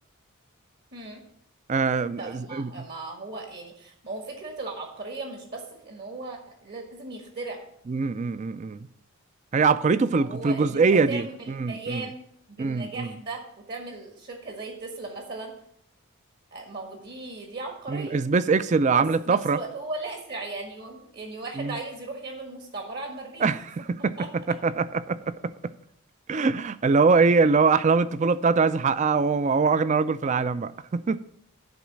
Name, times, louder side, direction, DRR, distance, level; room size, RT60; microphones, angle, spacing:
voice 1, 0.9-1.2 2.2-7.6 10.1-12.2 12.5-13.4 13.7-15.5 16.5-18.2 19.3-23.5 24.2-24.3, right 3 dB, 50° right, 1.6 m, -37 dB
voice 2, 1.7-2.9 7.9-8.9 9.5-11.2 11.6-12.0 12.6-13.1 17.9-19.6 21.6-21.8 23.4-24.2 24.5-25.7 26.3-31.2, right 4 dB, 35° right, 0.4 m, -23 dB
10.5 x 3.9 x 7.5 m
head